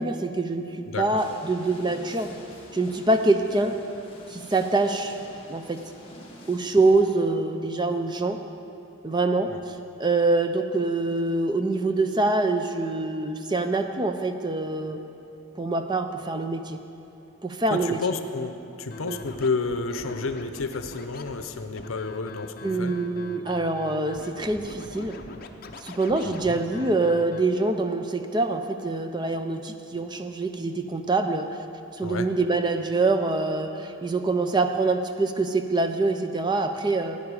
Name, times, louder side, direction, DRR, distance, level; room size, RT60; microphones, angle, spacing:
voice 1, 0.0-2.3 2.7-3.7 4.3-5.2 5.5-5.8 6.5-8.4 9.0-15.0 15.6-16.8 17.4-18.0 19.0-19.2 22.6-25.2 25.8-31.6 32.0-37.2, right 2 dB, 20° right, 7 dB, 0.5 m, -25 dB
sound 1, 1.2-7.2, left 1 dB, 25° left, 1.5 m, -47 dB
voice 2, 17.7-22.9 26.2-26.6 32.0-32.3, left 4 dB, 80° left, 8 dB, 0.6 m, -31 dB
Scratching (performance technique), 18.9-27.4, left 3 dB, 45° left, 0.7 m, -42 dB
16.0 x 9.6 x 4.8 m, 2.8 s
head